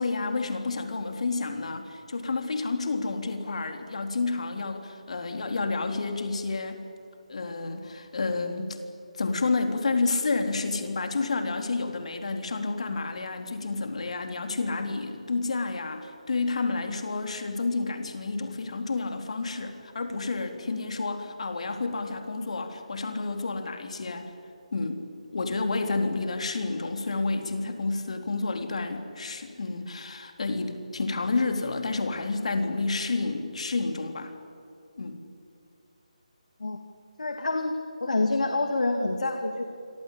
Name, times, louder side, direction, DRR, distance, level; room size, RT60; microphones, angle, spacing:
voice 1, 0.0-6.8 7.3-8.8 9.1-24.3 24.7-34.3 35.0-35.2, left 3 dB, 60° left, 6 dB, 3.8 m, -30 dB
voice 2, 37.2-39.6, left 2 dB, 75° left, 5 dB, 2.6 m, -27 dB
28.0 x 24.0 x 8.7 m, 2.6 s
figure-of-eight pair, 165°, 4 cm